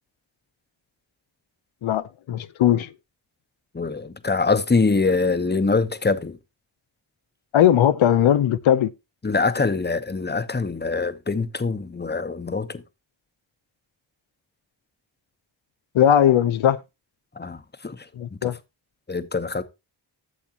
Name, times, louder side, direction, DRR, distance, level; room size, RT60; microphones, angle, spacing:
voice 1, 1.8-2.9 7.5-8.9 15.9-16.8 18.2-18.6, left 10 dB, 90° left, 0.6 m, -19 dB
voice 2, 3.7-6.4 9.2-12.8 17.4-18.0 18.4-18.5 19.1-19.6, left 4 dB, 20° left, 0.9 m, -24 dB
12.5 x 7.1 x 2.9 m
cardioid pair, 45°, 46 cm